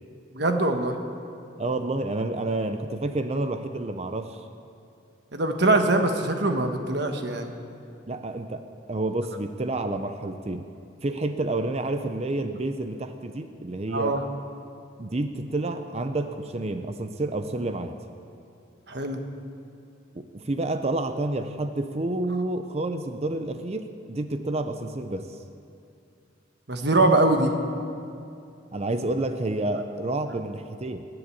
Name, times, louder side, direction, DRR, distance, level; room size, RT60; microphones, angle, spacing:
voice 1, 0.3-0.9 5.3-7.5 13.9-14.2 18.9-19.2 26.7-27.6, right 2 dB, 55° right, 5 dB, 1.3 m, -22 dB
voice 2, 1.6-4.4 8.1-10.7 11.0-14.2 15.0-18.0 20.1-25.3 28.7-31.1, right 2 dB, 30° right, 8 dB, 0.6 m, -29 dB
20.0 x 7.9 x 8.4 m, 2.5 s
head